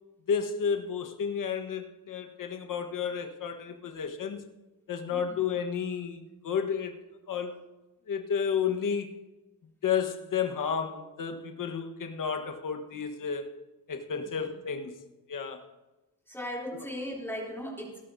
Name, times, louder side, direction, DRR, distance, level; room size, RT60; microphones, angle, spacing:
voice 1, 0.3-4.4 4.9-6.9 7.3-7.6 8.1-9.1 9.8-13.5 13.9-14.9 15.3-15.6 16.7-16.8, left 7 dB, 55° left, 5 dB, 1.4 m, -31 dB
voice 2, 14.2-14.5 16.3-18.0, equal, 5° left, -4 dB, 3.3 m, -38 dB
20.5 x 12.0 x 2.8 m, 1.1 s
cardioid pair, 95°, 39 cm